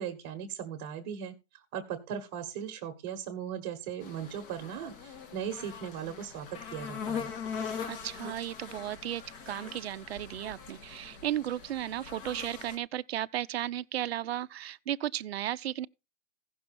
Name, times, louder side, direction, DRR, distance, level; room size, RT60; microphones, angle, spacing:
voice 1, 0.0-1.3 1.7-7.3, right 8 dB, 30° right, 1.3 m, -38 dB
sound 1, 4.0-12.8, left 6 dB, 40° left, 1.7 m, -41 dB
voice 2, 7.9-15.9, right 12 dB, 50° right, 0.5 m, -35 dB
16.0 x 6.2 x 4.2 m
hypercardioid pair, 160°, 42 cm